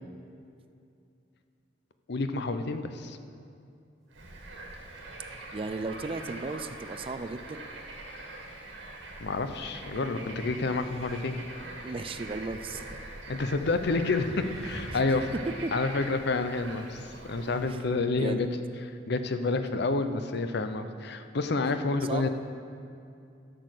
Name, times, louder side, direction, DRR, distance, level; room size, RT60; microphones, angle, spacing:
voice 1, 2.1-3.2 9.2-11.4 13.3-15.3 15.7-18.5 19.1-22.3, left 3 dB, 60° left, 9 dB, 0.7 m, -29 dB
Bird / Frog, 4.1-17.9, right 2 dB, 80° right, 2.0 m, -43 dB
sound 1, 5.1-5.4 6.0-8.1 10.4-11.5 13.0-13.1 14.2-15.7, equal, 5° left, 1.4 m, -48 dB
voice 2, 5.5-7.7 11.8-13.0 14.9-15.7 17.7-18.5 22.0-22.3, right 3 dB, 30° right, 10 dB, 0.4 m, -36 dB
12.5 x 6.3 x 6.6 m, 2.5 s
head